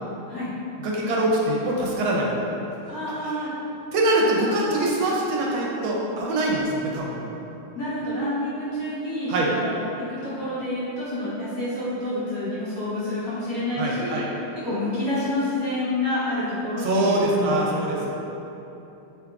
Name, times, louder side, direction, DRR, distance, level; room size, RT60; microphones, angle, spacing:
voice 1, 0.8-2.3 3.9-7.3 9.3-9.5 13.8-14.3 16.8-18.0, right 1 dB, 80° right, -3 dB, 1.3 m, -23 dB
voice 2, 2.9-3.5 7.7-14.2 14.5-17.7, left 1 dB, 55° left, -11 dB, 1.1 m, -28 dB
3.6 x 3.4 x 2.3 m, 3.0 s
omnidirectional pair, 2.2 m